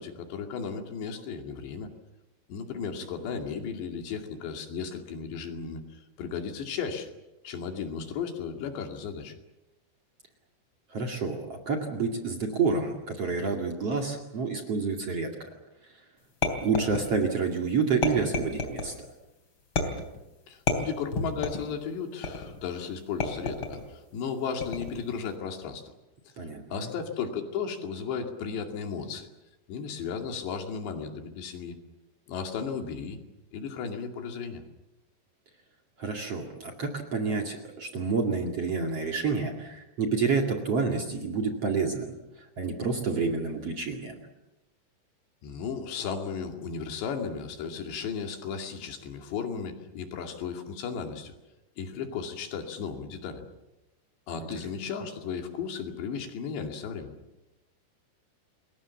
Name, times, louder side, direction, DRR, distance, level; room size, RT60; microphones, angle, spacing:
voice 1, 0.0-1.9 2.5-7.1 7.4-9.3 20.5-25.8 26.7-29.3 29.7-31.8 32.3-33.2 33.5-34.6 45.4-51.3 51.8-53.5 54.3-57.1, left 6 dB, 75° left, 4 dB, 4.6 m, -35 dB
voice 2, 10.9-15.3 16.6-18.9 26.4-26.9 36.0-44.2 54.5-54.6, right 4 dB, 40° right, 2 dB, 2.7 m, -29 dB
sound 1, 16.4-17.4 18.0-18.9 19.8-20.2 20.7-21.7 22.2-22.6 23.2-23.9 24.6-25.1, left 3 dB, 30° left, 3.4 m, -30 dB
29.5 x 21.5 x 7.2 m, 0.98 s
omnidirectional pair, 5.0 m